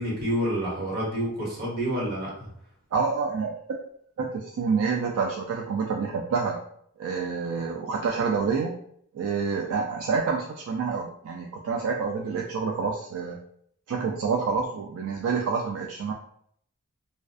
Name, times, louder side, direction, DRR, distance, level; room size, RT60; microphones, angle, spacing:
voice 1, 0.0-2.3, equal, 45° right, -5 dB, 1.1 m, -28 dB
voice 2, 2.9-3.5 4.2-6.6 7.0-8.7 9.1-13.4 13.9-16.1, right 5 dB, 65° right, 1 dB, 0.3 m, -28 dB
2.4 x 2.2 x 2.3 m, 0.67 s
head